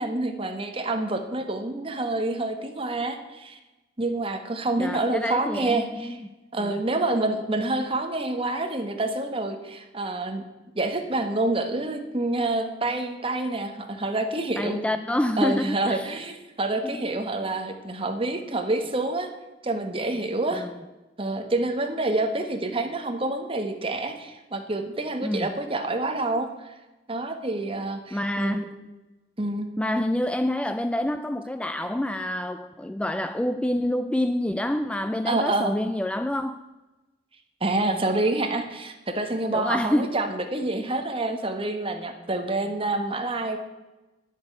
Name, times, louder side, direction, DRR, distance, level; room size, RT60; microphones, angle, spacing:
voice 1, 0.0-3.6 4.0-6.2 6.5-10.4 10.7-14.8 15.4-19.3 19.6-20.7 21.2-26.7 27.1-28.6 29.4-29.7 35.3-35.8 37.6-43.6, right 2 dB, 30° right, 6 dB, 1.3 m, -27 dB
voice 2, 4.8-6.3 6.6-6.7 14.6-16.1 16.8-17.0 20.5-20.8 25.2-25.5 28.1-28.8 29.8-36.6 39.5-40.1, left 1 dB, 5° left, 10 dB, 0.3 m, -27 dB
10.5 x 8.1 x 7.9 m, 1.1 s
head